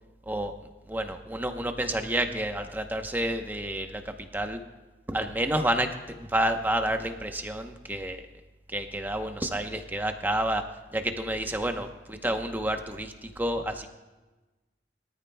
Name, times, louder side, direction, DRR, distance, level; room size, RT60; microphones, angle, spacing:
voice 1, 0.9-4.0 4.3-4.6 5.1-5.9 6.2-8.2 8.7-10.6 10.9-13.9, right 1 dB, 10° right, 6 dB, 0.8 m, -29 dB
21.5 x 13.5 x 2.2 m, 1.2 s
head